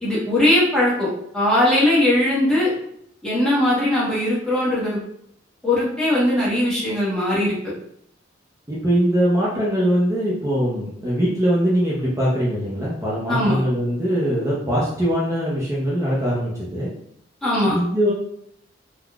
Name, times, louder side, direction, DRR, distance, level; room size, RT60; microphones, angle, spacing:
voice 1, 0.0-1.1 1.3-2.7 3.2-5.0 5.6-7.6 13.3-13.6 17.4-17.8, left 1 dB, 5° left, -8 dB, 1.1 m, -19 dB
voice 2, 8.7-16.9 17.6-18.1, equal, 15° right, -6 dB, 0.6 m, -22 dB
3.5 x 2.3 x 2.3 m, 0.72 s
head